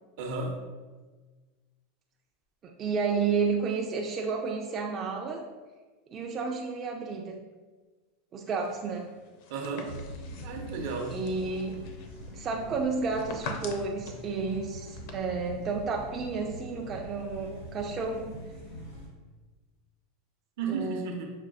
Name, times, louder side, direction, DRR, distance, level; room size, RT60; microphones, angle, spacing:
voice 1, 0.2-0.6 9.5-9.9 10.4-11.2 20.6-21.3, right 4 dB, 65° right, 2 dB, 0.7 m, -33 dB
voice 2, 2.8-5.4 6.1-7.4 8.3-9.1 11.1-11.8 12.3-18.3 20.7-21.2, right 4 dB, 25° right, 0 dB, 0.3 m, -31 dB
sound 1, 8.4-15.1, left 4 dB, 55° left, 0.5 m, -45 dB
sound 2, 9.8-19.1, equal, 85° left, 1.3 m, -43 dB
5.9 x 2.6 x 2.4 m, 1.3 s
supercardioid pair, 155°, 0 cm